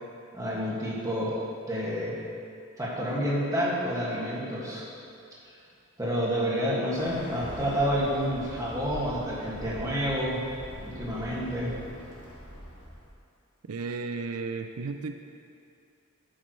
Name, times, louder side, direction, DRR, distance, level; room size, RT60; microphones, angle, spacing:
voice 1, 0.3-1.3 1.7-2.1 2.8-4.9 6.0-10.4 10.8-11.7, equal, 15° right, -6 dB, 2.0 m, -29 dB
Bird, 7.0-13.1, equal, 60° left, 2.1 m, -43 dB
voice 2, 13.7-15.1, right 4 dB, 85° right, 6 dB, 0.4 m, -33 dB
11.5 x 8.8 x 3.2 m, 2.5 s
head